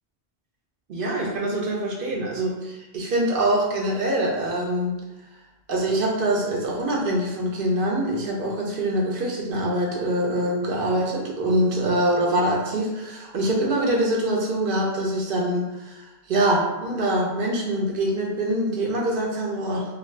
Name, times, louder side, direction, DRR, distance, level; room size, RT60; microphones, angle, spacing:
voice 1, 0.9-5.0 5.7-19.9, right 1 dB, 60° right, -2 dB, 0.7 m, -24 dB
2.4 x 2.1 x 3.1 m, 1.0 s
omnidirectional pair, 1.1 m